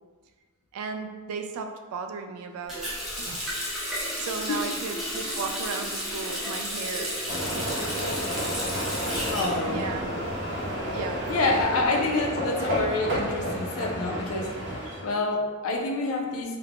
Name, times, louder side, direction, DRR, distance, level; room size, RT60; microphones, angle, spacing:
voice 1, 0.7-3.4 4.2-7.2 7.5-8.2 9.1-10.1 10.8-11.7, right 5 dB, 75° right, 7 dB, 0.3 m, -36 dB
Water tap faucet, 2.7-10.4 10.7-11.8, equal, ahead, 0.6 m, -33 dB
sound 1, 7.3-15.0, equal, 55° right, 0.8 m, -31 dB
voice 2, 9.3-9.9 11.3-14.5 15.0-16.6, left 2 dB, 75° left, 2 dB, 0.4 m, -27 dB
2.3 x 2.1 x 3.4 m, 1.4 s
head